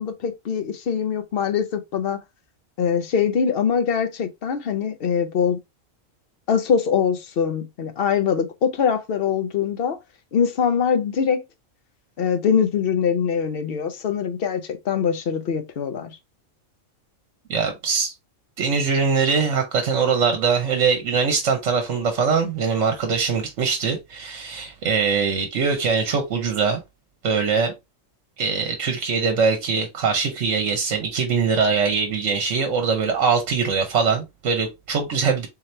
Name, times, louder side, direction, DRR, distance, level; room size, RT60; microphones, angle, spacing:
voice 1, 0.0-2.2 2.8-5.6 6.5-10.0 10.3-11.4 12.2-16.1, left 7 dB, 55° left, 0.8 m, -23 dB
voice 2, 17.5-18.1 18.6-26.8 27.2-27.7 28.4-35.5, right 5 dB, 65° right, 1.1 m, -22 dB
3.9 x 2.9 x 3.2 m
omnidirectional pair, 1.4 m